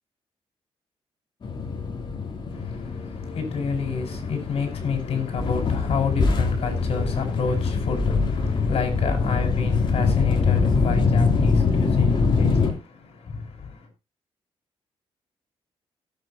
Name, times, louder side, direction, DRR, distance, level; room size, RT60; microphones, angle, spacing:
sound 1, 1.4-12.7, left 4 dB, 50° left, 2.9 m, -23 dB
voice 1, 2.5-13.9, left 5 dB, 70° left, 4.7 m, -30 dB
18.0 x 8.2 x 2.8 m
cardioid pair, 120°, 11 cm